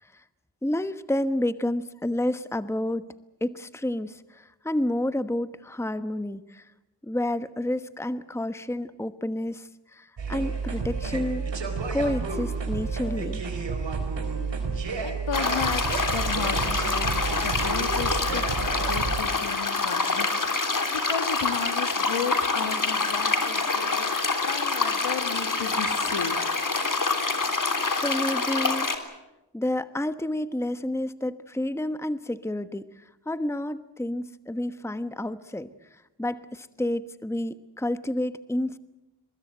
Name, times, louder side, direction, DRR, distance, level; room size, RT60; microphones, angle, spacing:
voice 1, 0.6-3.1 3.4-6.7 7.0-11.4 11.9-13.4 27.6-28.9 29.5-38.8, left 1 dB, 5° left, 12 dB, 1.2 m, -30 dB
sound 1, 10.2-19.2, right 4 dB, 85° right, 4.6 m, -30 dB
voice 2, 15.0-20.6 20.9-24.2 24.4-26.5, left 7 dB, 85° left, 10 dB, 1.7 m, -34 dB
sound 2, 15.3-29.0, left 3 dB, 45° left, 3.5 m, -26 dB
23.5 x 21.0 x 7.9 m, 0.98 s
cardioid pair, 45°, 43 cm